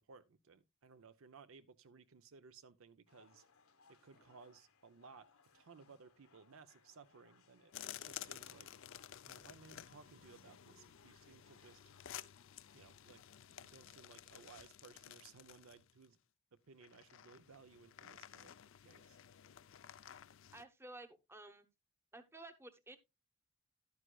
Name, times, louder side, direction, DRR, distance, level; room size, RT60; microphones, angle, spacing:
voice 1, 0.0-3.4 3.9-5.3 5.5-8.7 9.3-11.8 12.7-13.2 13.6-16.2 16.5-18.5 18.8-19.2, right 5 dB, 65° right, 0.6 m, -60 dB
sound 1, 3.1-13.2, left 5 dB, 80° left, 1.5 m, -70 dB
sound 2, 7.7-16.0 16.8-20.6, left 11 dB, 60° left, 0.5 m, -53 dB
voice 2, 20.5-21.6 22.1-23.0, right 2 dB, 10° right, 0.9 m, -53 dB
11.5 x 9.5 x 2.3 m
head